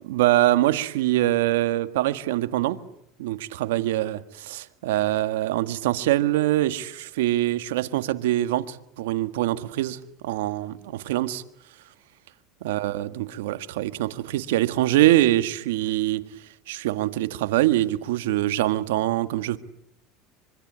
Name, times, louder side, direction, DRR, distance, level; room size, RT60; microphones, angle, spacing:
voice 1, 0.1-2.8 3.2-11.4 12.6-16.2 16.7-19.6, right 15 dB, 85° right, 1.6 m, -24 dB
25.0 x 24.5 x 8.8 m
supercardioid pair, 105°, 0 cm